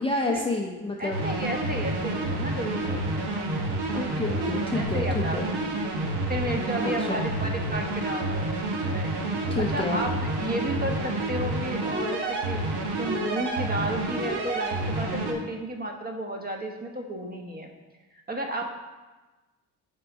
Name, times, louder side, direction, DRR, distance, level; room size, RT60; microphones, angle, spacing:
voice 1, 0.0-1.3 3.9-5.5 6.8-7.2 9.5-10.1, left 2 dB, 15° left, -1 dB, 0.6 m, -29 dB
voice 2, 1.0-3.1 4.3-5.6 6.3-9.2 9.6-10.1 10.4-12.6 13.0-17.7 18.3-18.6, right 1 dB, 20° right, 2 dB, 1.0 m, -33 dB
sound 1, 1.1-15.3, right 2 dB, 70° right, 1.3 m, -29 dB
5.3 x 4.4 x 5.4 m, 1.2 s
cardioid pair, 85°, 40 cm